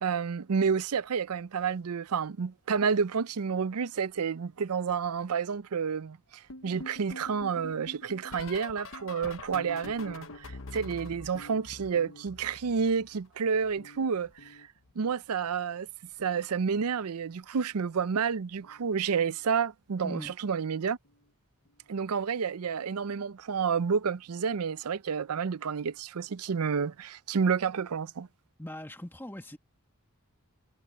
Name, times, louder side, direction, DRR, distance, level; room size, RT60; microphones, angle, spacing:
voice 1, 0.0-14.7 15.0-15.9 16.2-21.0 21.9-28.3, right 6 dB, 85° right, 0.5 m, -30 dB
sound 1, 6.5-13.3 13.5-15.1 16.1-16.5 16.7-17.1 18.6-18.9 19.2-19.5 21.0-21.1, left 2 dB, 65° left, 0.9 m, -46 dB
voice 2, 20.0-20.3 28.6-29.6, left 1 dB, 10° left, 1.8 m, -40 dB
head